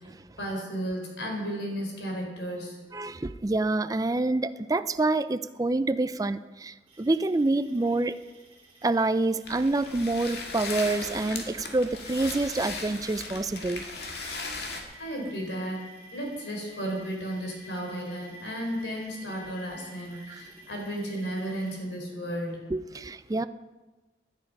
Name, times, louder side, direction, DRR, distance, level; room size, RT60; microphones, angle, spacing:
voice 1, 0.4-2.8 15.0-15.8 16.1-22.6, right 1 dB, 85° left, 1 dB, 4.1 m, -34 dB
voice 2, 2.9-8.1 8.8-13.8 20.3-20.4 22.7-23.5, right 2 dB, 20° right, 13 dB, 0.4 m, -27 dB
sound 1, 6.9-21.8, right 1 dB, 35° right, 3.8 m, -52 dB
sound 2, 9.4-14.8, left 3 dB, 65° left, 2.1 m, -37 dB
17.0 x 11.0 x 5.4 m, 1.2 s
head